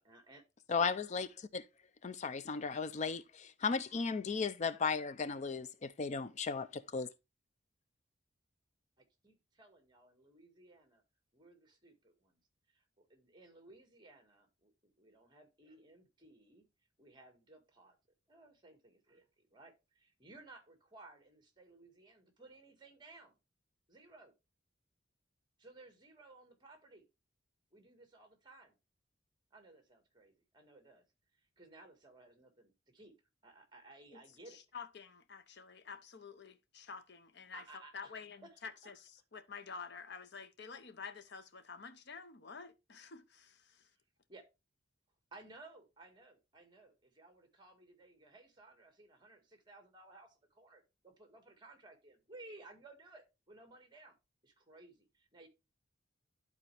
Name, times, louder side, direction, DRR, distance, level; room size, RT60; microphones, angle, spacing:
voice 1, 0.0-0.5 9.0-11.0 11.3-12.4 12.7-16.6 17.0-18.0 18.3-23.4 23.9-24.3 25.6-27.1 27.7-28.8 29.5-31.1 31.6-33.1 33.4-34.6 37.5-38.2 38.4-38.9 44.3-44.4 45.3-54.1 54.4-55.5, right 2 dB, 25° right, 1.8 m, -58 dB
voice 2, 0.7-1.6 2.0-7.1, left 5 dB, 40° left, 0.4 m, -36 dB
voice 3, 34.1-43.8, left 5 dB, 60° left, 0.8 m, -50 dB
11.5 x 4.2 x 3.3 m
head